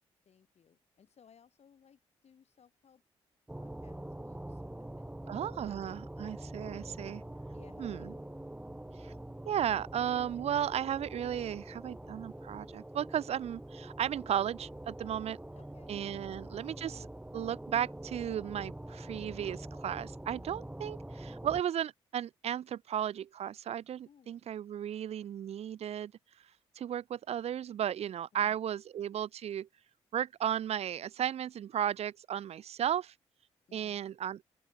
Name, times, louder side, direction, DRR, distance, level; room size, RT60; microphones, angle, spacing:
voice 1, 0.3-3.0 3.5-5.5 7.5-8.2 15.6-15.9 16.2-16.4 24.1-24.4 28.3-28.6 33.7-34.2, left 7 dB, 60° left, 7.1 m, -62 dB
sound 1, 3.5-21.6, right 1 dB, 10° right, 1.6 m, -45 dB
voice 2, 5.3-7.2 7.8-8.1 9.0-9.1 9.5-15.4 15.9-17.1 17.3-26.1 26.8-29.7 30.1-33.1 33.7-34.4, right 10 dB, 60° right, 0.5 m, -35 dB
sound 2, 5.5-18.6, left 14 dB, 85° left, 7.5 m, -74 dB
open air
supercardioid pair, 50°, 12 cm